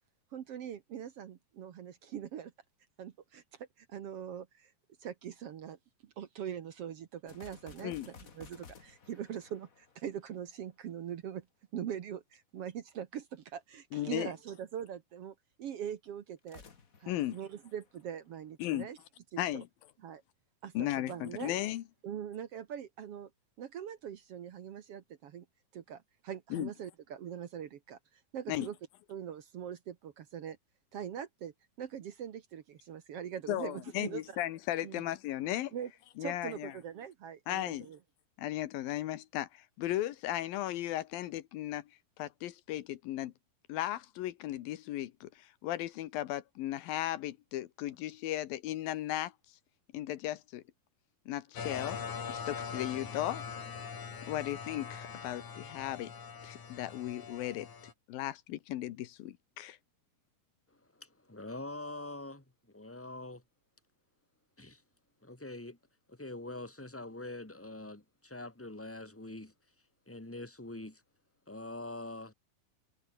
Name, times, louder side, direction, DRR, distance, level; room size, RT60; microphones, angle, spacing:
voice 1, 0.3-2.5 3.0-4.7 5.0-11.5 11.7-16.6 17.0-19.0 19.3-19.6 20.0-20.2 20.6-21.5 22.0-23.3 23.6-25.4 25.7-28.7 29.1-30.6 30.9-34.4 34.8-35.0 35.7-35.9 36.2-38.0, right 9 dB, 60° right, 1.6 m, -42 dB
sound 1, 7.3-10.7 16.4-18.5, left 5 dB, 35° left, 1.5 m, -55 dB
voice 2, 13.9-14.3 17.1-17.4 18.6-18.9 19.4-19.7 20.7-21.8 26.5-26.7 28.5-28.7 33.5-35.7 36.2-36.7 37.5-37.9 38.4-41.8 42.2-43.3 43.7-49.3 49.9-50.6 51.3-52.0 52.3-53.5 54.3-56.1 56.4-57.7 58.1-59.8, left 14 dB, 85° left, 2.9 m, -36 dB
sound 2, 51.6-57.9, left 6 dB, 55° left, 4.9 m, -42 dB
voice 3, 60.7-63.4 64.6-64.8 65.2-65.8 66.1-69.5 70.0-71.0 71.5-72.3, left 2 dB, 5° left, 1.6 m, -44 dB
omnidirectional pair, 4.1 m